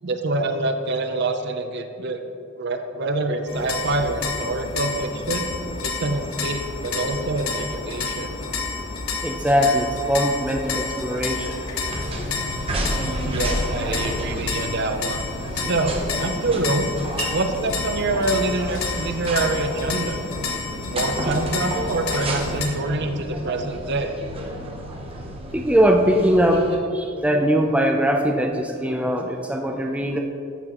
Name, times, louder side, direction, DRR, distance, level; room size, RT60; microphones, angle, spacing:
voice 1, 0.0-2.2 2.5-5.5 5.8-8.3 13.0-15.2 15.5-16.9 17.3-20.2 20.9-24.1, right 2 dB, 55° right, 7 dB, 0.6 m, -26 dB
sound 1, 3.5-22.7, left 4 dB, 90° left, 1.1 m, -30 dB
voice 2, 9.2-11.6 25.5-26.7 26.9-30.2, equal, 5° right, 2 dB, 0.5 m, -21 dB
sound 2, 11.9-26.8, right 1 dB, 25° right, 0.9 m, -31 dB
14.0 x 6.1 x 3.0 m, 2.5 s
head